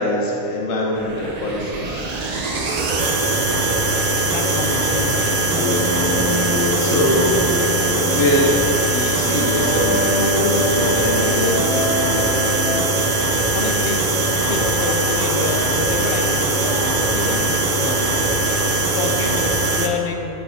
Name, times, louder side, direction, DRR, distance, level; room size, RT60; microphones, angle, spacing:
voice 1, 0.0-2.1 6.8-7.4 7.8-8.5 8.8-11.7, left 1 dB, 65° left, -3 dB, 1.3 m, -23 dB
sound 1, 0.9-19.9, right 2 dB, 55° right, 0.4 m, -21 dB
voice 2, 4.2-5.9 6.3-6.5 13.5-14.0 14.3-16.6 17.1-18.1 18.9-20.4, left 4 dB, 85° left, 3 dB, 0.4 m, -28 dB
sound 2, 5.1-13.0, left 2 dB, 50° left, 0.9 m, -25 dB
sound 3, 11.6-18.7, equal, 20° right, 0.7 m, -35 dB
9.8 x 7.5 x 2.7 m, 2.8 s
omnidirectional pair, 1.5 m